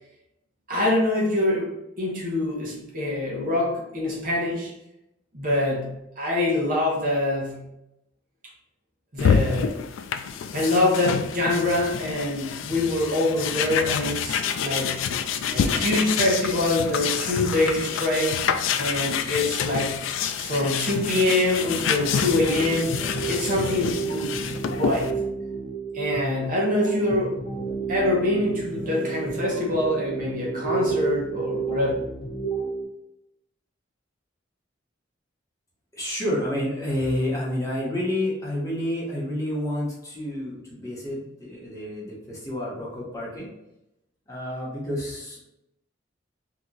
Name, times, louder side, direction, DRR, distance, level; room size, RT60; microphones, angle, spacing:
voice 1, 0.7-1.7 2.0-4.7 5.3-7.6 9.1-9.7 10.5-15.1 15.5-18.5 18.8-20.0 20.4-24.3 24.7-25.1 25.9-27.3 27.9-31.9, left 1 dB, 45° right, -3 dB, 1.0 m, -25 dB
sound 1, 9.2-25.1, left 7 dB, 80° left, 0.3 m, -27 dB
sound 2, 21.8-32.8, right 5 dB, 50° left, 0.9 m, -31 dB
voice 2, 35.9-43.5 44.3-45.4, left 1 dB, 15° left, -6 dB, 1.0 m, -29 dB
2.9 x 2.4 x 3.8 m, 0.86 s
head